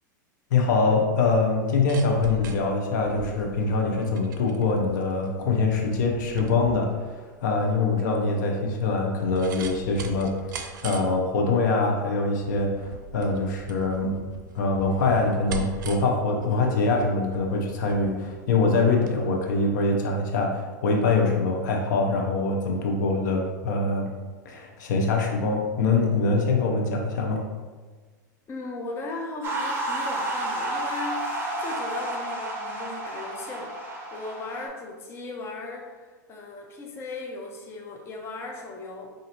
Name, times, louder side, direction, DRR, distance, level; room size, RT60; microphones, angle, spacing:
voice 1, 0.5-7.1 7.4-10.3 10.8-14.1 14.5-24.1 24.4-27.4, left 3 dB, 70° left, 1 dB, 0.8 m, -24 dB
sound 1, 1.5-19.2 19.5-19.6, right 3 dB, 80° right, 0.5 m, -40 dB
voice 2, 28.5-39.1, left 3 dB, 25° left, 0 dB, 0.6 m, -37 dB
sound 2, 29.4-34.7, right 1 dB, 20° right, 0.9 m, -31 dB
5.0 x 2.6 x 2.9 m, 1.4 s
hypercardioid pair, 120°, 10 cm